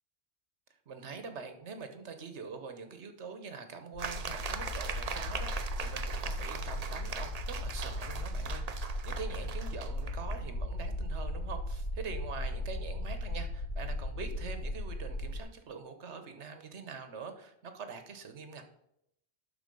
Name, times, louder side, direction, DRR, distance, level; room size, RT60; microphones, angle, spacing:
voice 1, 0.9-18.6, right 5 dB, 80° right, 8 dB, 1.3 m, -44 dB
sound 1, 3.9-15.4, left 1 dB, 65° left, 1.1 m, -37 dB
sound 2, 4.0-10.4, right 6 dB, 45° right, 0.6 m, -41 dB
11.5 x 4.1 x 5.3 m, 0.78 s
omnidirectional pair, 1.1 m